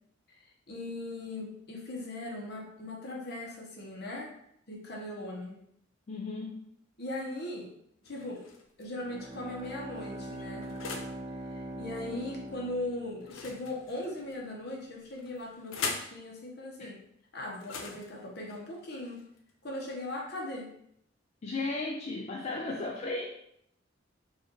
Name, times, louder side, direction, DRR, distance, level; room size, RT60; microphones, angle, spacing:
voice 1, 0.3-4.3 4.7-5.6 7.0-7.7 8.0-8.5 8.8-10.7 11.5-17.0 17.3-19.2 19.6-20.7, left 1 dB, 55° left, -1 dB, 1.0 m, -39 dB
voice 2, 6.1-6.7 16.8-16.9 21.4-23.3, left 3 dB, 35° left, 0 dB, 0.3 m, -35 dB
sound 1, 8.0-8.8 9.6-11.2 13.2-14.3 15.2-16.2 17.5-19.5, left 4 dB, 80° left, 0.6 m, -41 dB
Bowed string instrument, 8.9-13.6, right 1 dB, 15° right, 0.6 m, -42 dB
4.8 x 2.5 x 2.9 m, 0.73 s
head